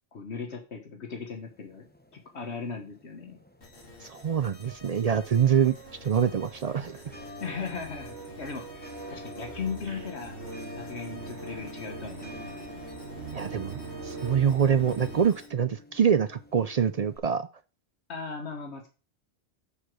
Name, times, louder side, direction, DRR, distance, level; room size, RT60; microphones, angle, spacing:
voice 1, 0.1-1.9 2.1-3.4 7.4-10.4 10.7-12.3 18.1-18.9, left 5 dB, 75° left, 3 dB, 1.6 m, -37 dB
sound 1, 1.2-17.2, left 2 dB, 10° left, 0.9 m, -49 dB
sound 2, 3.6-15.5, left 1 dB, 55° left, 2.3 m, -51 dB
voice 2, 4.0-5.8 6.0-7.0 13.3-17.5, right 8 dB, 55° right, 13 dB, 0.4 m, -25 dB
sound 3, 5.1-15.3, right 4 dB, 80° right, 1.3 m, -42 dB
8.4 x 5.1 x 6.1 m, 0.34 s
omnidirectional pair, 1.1 m